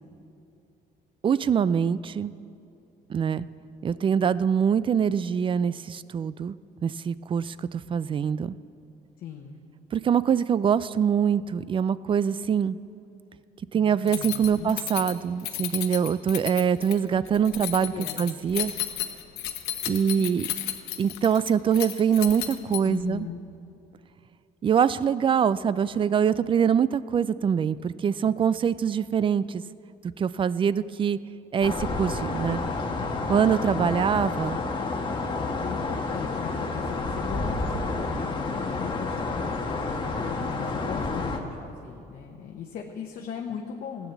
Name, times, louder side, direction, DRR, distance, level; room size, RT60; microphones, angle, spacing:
voice 1, 1.2-2.3 3.1-3.5 3.8-6.5 6.8-8.5 9.9-12.8 13.7-17.9 18.2-18.7 19.9-20.5 21.0-23.3 24.6-29.6 30.2-31.2 31.5-32.6 33.3-34.6, right 7 dB, 30° right, 17 dB, 0.3 m, -24 dB
voice 2, 9.2-9.6 13.7-14.7 17.9-18.3 19.9-20.3 22.8-23.4 35.5-44.1, left 7 dB, 60° left, 2 dB, 1.0 m, -39 dB
Keys jangling, 14.1-23.1, left 13 dB, 80° left, 1.0 m, -33 dB
sound 1, 31.6-41.4, left 3 dB, 30° left, 1.4 m, -29 dB
14.5 x 9.3 x 7.2 m, 2.6 s
cardioid pair, 110°, 17 cm